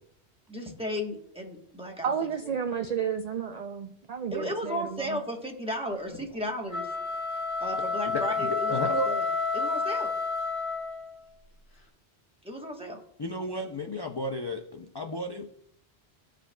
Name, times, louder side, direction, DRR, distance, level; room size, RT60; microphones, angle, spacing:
voice 1, 0.5-2.1 4.3-6.9 7.6-9.3 9.5-10.1 12.4-13.0, equal, 5° right, 0 dB, 1.0 m, -35 dB
voice 2, 2.0-5.2, right 7 dB, 55° right, 6 dB, 0.4 m, -32 dB
sound 1, 6.6-11.2, left 4 dB, 75° left, 2.1 m, -30 dB
voice 3, 8.1-9.1 13.2-15.5, left 1 dB, 35° left, 3 dB, 0.4 m, -33 dB
14.5 x 5.0 x 2.2 m, 0.69 s
omnidirectional pair, 1.1 m